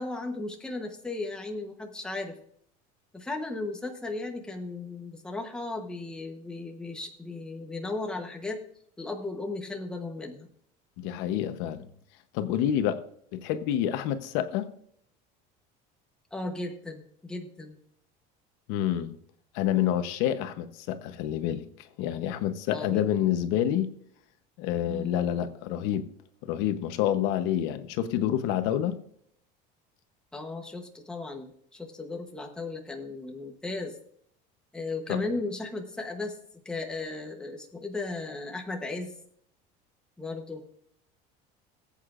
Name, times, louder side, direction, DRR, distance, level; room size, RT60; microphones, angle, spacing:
voice 1, 0.0-2.4 3.1-8.6 9.0-10.5 16.3-17.8 22.7-23.0 24.9-25.2 30.3-34.0 34.7-36.4 36.6-39.1 40.2-40.6, left 2 dB, 5° left, 1.0 m, -36 dB
voice 2, 11.0-11.9 12.3-13.0 13.3-14.7 18.7-19.2 19.5-21.6 22.0-23.9 24.6-26.1 26.4-28.9 35.1-35.2, left 11 dB, 65° left, 0.9 m, -28 dB
19.0 x 8.3 x 2.5 m
cardioid pair, 175°, 19 cm